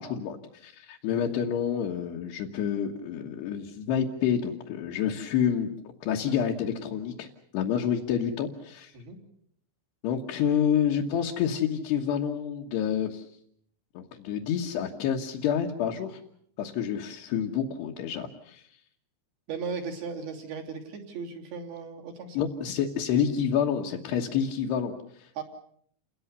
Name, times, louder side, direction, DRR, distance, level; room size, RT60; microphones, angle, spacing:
voice 1, 0.0-5.7 6.0-7.3 7.5-8.9 10.0-13.2 13.9-16.2 16.6-18.6 22.3-25.4, left 8 dB, 70° left, 0 dB, 3.1 m, -28 dB
voice 2, 19.5-22.4 25.4-25.5, right 5 dB, 55° right, 1 dB, 4.7 m, -36 dB
29.5 x 20.0 x 6.8 m, 0.65 s
omnidirectional pair, 5.6 m